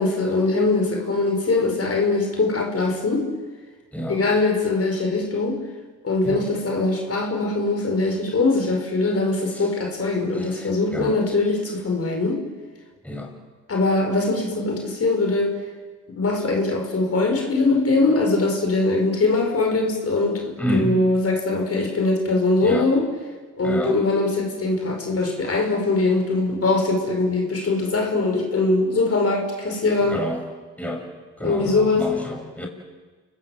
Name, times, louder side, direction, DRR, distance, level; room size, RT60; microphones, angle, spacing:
voice 1, 0.0-3.3 4.1-5.6 6.0-12.4 13.7-15.5 16.1-23.1 23.6-30.2 31.4-32.1, left 3 dB, 45° left, 2 dB, 5.9 m, -22 dB
voice 2, 10.3-11.1 13.0-13.3 20.6-21.0 22.6-22.9 23.6-24.0 30.1-30.4 30.8-31.1 31.4-32.7, equal, 5° left, 1 dB, 6.5 m, -29 dB
29.5 x 19.0 x 8.0 m, 1.4 s
supercardioid pair, 60°, 35 cm